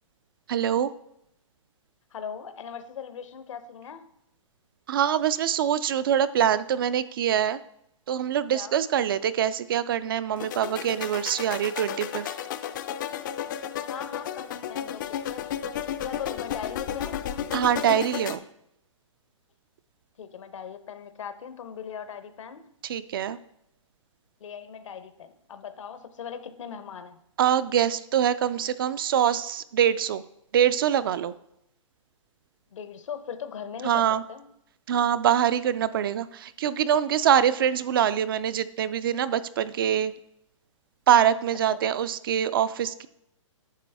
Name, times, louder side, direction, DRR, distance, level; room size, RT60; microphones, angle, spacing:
voice 1, 0.5-0.9 4.9-7.6 8.1-12.3 17.5-18.4 22.8-23.4 27.4-30.2 30.5-31.3 33.8-34.2 34.9-40.1 41.1-43.1, right 9 dB, 45° right, 15 dB, 0.4 m, -24 dB
voice 2, 2.1-4.0 8.5-8.8 13.9-15.4 16.0-17.3 20.2-22.6 24.4-27.2 32.7-34.5, left 7 dB, 70° left, 11 dB, 0.9 m, -39 dB
sound 1, 10.4-18.4, left 10 dB, 40° left, 0.4 m, -33 dB
9.2 x 6.0 x 3.4 m, 0.79 s
hypercardioid pair, 155°, 17 cm